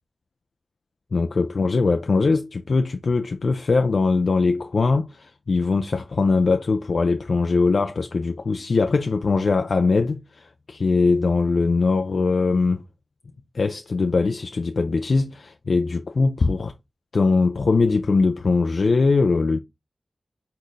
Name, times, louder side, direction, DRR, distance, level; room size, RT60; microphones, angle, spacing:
voice 1, 1.1-12.8 13.5-16.7 17.1-19.6, left 4 dB, 65° left, 0.4 m, -21 dB
4.2 x 3.9 x 3.1 m
wide cardioid pair, 75°, 0 cm